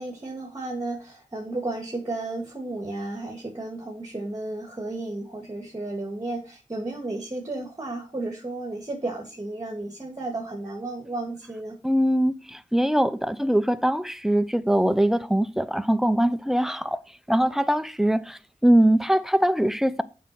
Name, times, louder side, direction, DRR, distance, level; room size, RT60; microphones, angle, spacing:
voice 1, 0.0-11.7, right 2 dB, 25° right, 2.1 m, -33 dB
voice 2, 11.8-17.0 17.3-20.0, right 1 dB, 5° right, 0.6 m, -22 dB
7.4 x 5.3 x 5.9 m
cardioid pair, 65°, 14 cm